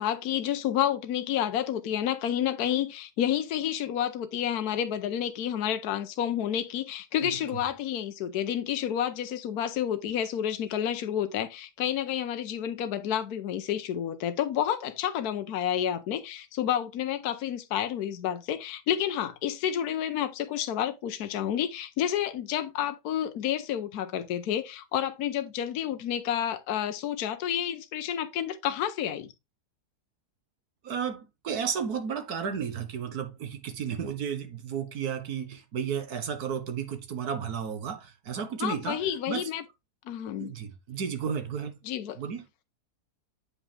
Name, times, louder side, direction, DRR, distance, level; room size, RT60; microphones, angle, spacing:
voice 1, 0.0-29.3 38.6-39.6 40.1-40.5 41.8-42.2, left 10 dB, 75° left, 1.2 m, -30 dB
voice 2, 7.2-7.6 30.8-39.5 40.4-41.8 42.2-42.4, right 7 dB, 70° right, 1.7 m, -33 dB
8.5 x 5.2 x 3.4 m
omnidirectional pair, 1.7 m